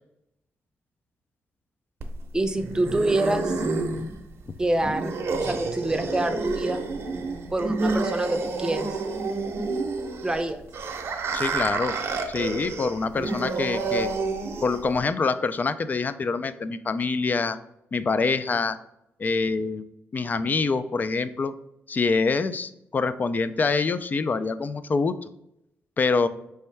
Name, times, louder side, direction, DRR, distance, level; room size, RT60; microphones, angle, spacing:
sound 1, 2.0-15.0, right 3 dB, 60° right, 0.6 m, -29 dB
voice 1, 2.3-3.5 4.6-5.1 5.4-6.8 7.5-9.0 10.2-10.6, right 2 dB, 15° right, 7 dB, 0.6 m, -26 dB
voice 2, 11.3-11.9 12.3-14.1 14.6-17.6 17.9-18.8 19.2-19.8 20.1-21.5 21.9-25.2 26.0-26.3, left 4 dB, 35° left, 13 dB, 0.3 m, -25 dB
4.4 x 3.3 x 3.2 m, 0.79 s
cardioid pair, 75°, 5 cm